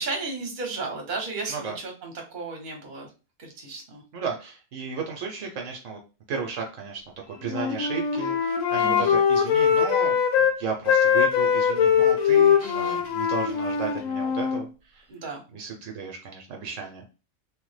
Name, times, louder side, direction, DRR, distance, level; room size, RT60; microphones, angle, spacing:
voice 1, 0.0-3.1 3.4-4.0 8.8-9.2 12.6-13.0 15.1-15.4, right 3 dB, 40° right, 1 dB, 0.9 m, -34 dB
voice 2, 4.1-6.0 6.3-7.0 7.3-15.0 15.5-17.0, right 5 dB, 75° right, 2 dB, 0.9 m, -34 dB
Wind instrument woodwind instrument, 7.5-10.5 10.9-14.6, left 7 dB, 75° left, 1.0 m, -22 dB
3.1 x 2.1 x 3.1 m, 0.32 s
omnidirectional pair, 1.4 m